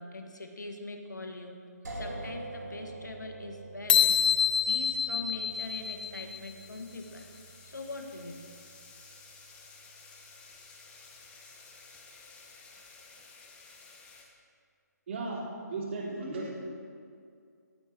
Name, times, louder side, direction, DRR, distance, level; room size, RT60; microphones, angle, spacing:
voice 1, 0.0-1.6 1.9-8.3, left 2 dB, 80° left, 4 dB, 1.5 m, -42 dB
sound 1, 1.8-11.6, right 2 dB, 70° right, 2.4 m, -47 dB
sound 2, 3.9-6.5, left 8 dB, 30° left, 0.4 m, -26 dB
sound 3, 5.5-14.2, left 4 dB, 10° left, 1.1 m, -54 dB
voice 2, 15.1-15.4 15.7-16.5, right 3 dB, 40° right, -3 dB, 2.6 m, -35 dB
16.5 x 9.8 x 3.0 m, 2.3 s
figure-of-eight pair, 145°, 10 cm